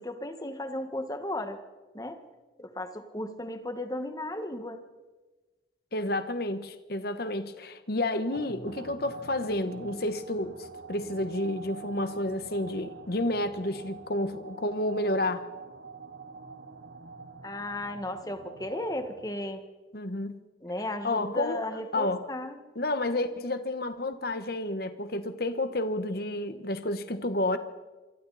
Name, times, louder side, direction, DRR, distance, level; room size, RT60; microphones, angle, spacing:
voice 1, 0.0-1.6 1.9-2.2 2.6-4.8 17.4-19.6 20.6-22.6, left 1 dB, 20° left, 7 dB, 1.7 m, -35 dB
voice 2, 5.9-15.4 19.9-20.4 21.0-21.6 21.9-22.2 22.7-27.6, left 1 dB, 60° left, 10 dB, 1.4 m, -30 dB
sound 1, 8.3-19.7, right 4 dB, 75° right, 1.3 m, -46 dB
27.0 x 24.0 x 4.2 m, 1.2 s
head